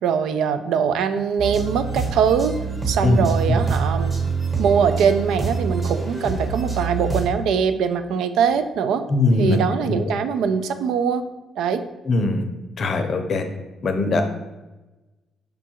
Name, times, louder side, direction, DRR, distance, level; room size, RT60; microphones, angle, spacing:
voice 1, 0.0-2.6 2.9-4.1 4.6-9.0 9.4-11.2 11.6-11.8, right 7 dB, 85° right, 10 dB, 0.3 m, -22 dB
sound 1, 1.4-7.3, right 4 dB, 25° right, 1.1 m, -25 dB
voice 2, 3.0-3.6 9.1-10.1 12.0-12.4 12.8-13.4 13.8-14.2, left 2 dB, 50° left, 6 dB, 0.6 m, -21 dB
5.0 x 2.3 x 4.4 m, 1.1 s
cardioid pair, 90°, 0 cm